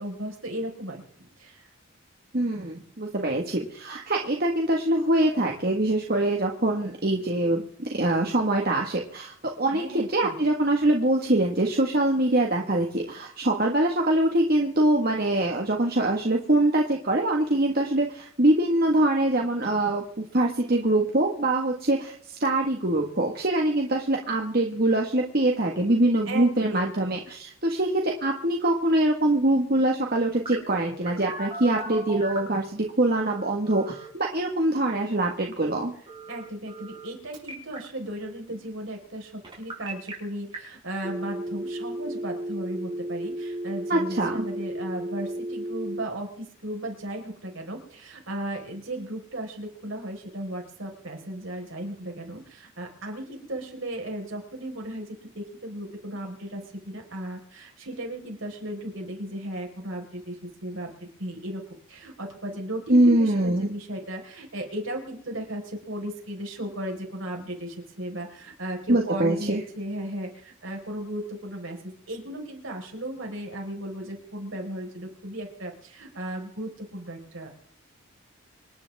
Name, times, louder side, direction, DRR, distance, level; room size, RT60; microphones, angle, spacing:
voice 1, 0.0-1.7 9.7-10.4 26.2-26.9 27.1-27.2 36.3-77.5, right 1 dB, 65° right, 2 dB, 4.7 m, -36 dB
voice 2, 2.3-35.9 43.9-44.5 62.9-63.7 68.9-69.6, right 1 dB, 45° right, 1 dB, 1.7 m, -24 dB
Telephone, 30.5-32.5 33.1-34.1 36.1-37.1 37.3-37.8 39.4-40.1 40.5-40.6 41.0-46.0, right 1 dB, 25° right, 6.0 m, -35 dB
27.0 x 10.0 x 3.6 m, 0.65 s
head